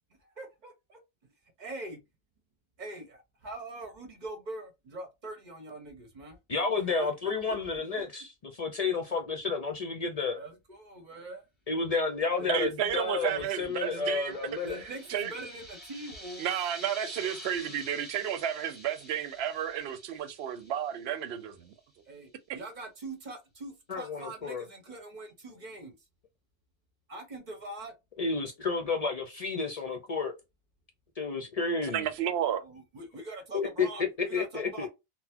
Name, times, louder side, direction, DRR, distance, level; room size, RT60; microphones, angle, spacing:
voice 1, 0.4-1.0 1.6-2.0 2.8-6.4 7.0-7.8 10.3-11.4 12.4-13.4 13.9-14.2 14.7-16.5 22.1-25.9 27.1-27.9 32.6-34.9, right 2 dB, 50° right, 1.1 m, -43 dB
voice 2, 6.5-10.4 11.7-14.8 23.9-24.6 28.2-30.3 31.2-32.1 33.5-34.9, left 4 dB, 50° left, 0.5 m, -31 dB
voice 3, 12.5-14.4 15.1-15.3 16.4-21.7 31.8-32.6, right 9 dB, 85° right, 0.8 m, -32 dB
sound 1, 13.1-21.4, equal, 10° left, 1.7 m, -48 dB
3.9 x 2.1 x 2.7 m
omnidirectional pair, 1.0 m